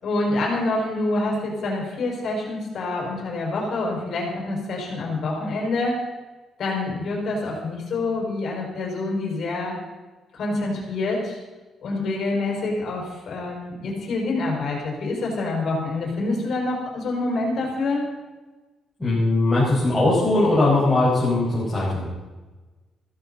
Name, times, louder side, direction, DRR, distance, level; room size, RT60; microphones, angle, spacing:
voice 1, 0.0-5.9 6.6-9.8 10.3-11.4 11.8-18.0, left 2 dB, 60° left, -2 dB, 5.7 m, -26 dB
voice 2, 19.0-22.1, left 2 dB, 10° left, -9 dB, 5.6 m, -20 dB
16.0 x 14.5 x 4.3 m, 1.2 s
cardioid pair, 120°, 0 cm